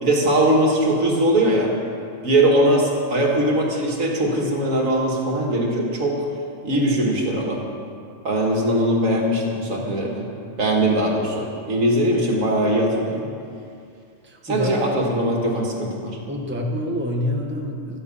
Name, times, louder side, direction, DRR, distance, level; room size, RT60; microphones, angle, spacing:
voice 1, 0.0-1.7 2.2-6.2 6.6-7.6 8.2-10.2 10.6-13.3 14.4-16.2, right 1 dB, 75° right, -1 dB, 2.4 m, -20 dB
voice 2, 14.2-14.7 16.3-18.0, left 1 dB, 10° right, 1 dB, 1.2 m, -26 dB
13.5 x 13.0 x 5.6 m, 2.4 s
omnidirectional pair, 1.4 m